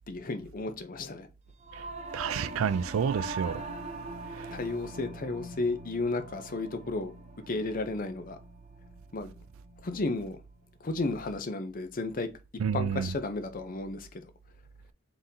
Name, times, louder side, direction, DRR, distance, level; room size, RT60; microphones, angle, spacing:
voice 1, 0.1-1.3 4.5-7.1 7.5-8.4 9.1-9.3 9.8-10.4 10.8-12.3 12.7-14.2, left 3 dB, 40° left, 0.6 m, -33 dB
Singing / Musical instrument, 1.6-11.2, right 2 dB, 30° right, 0.7 m, -43 dB
voice 2, 2.1-3.6 4.4-4.5 12.6-13.1, right 7 dB, 70° right, 0.3 m, -29 dB
4.0 x 3.7 x 2.7 m
head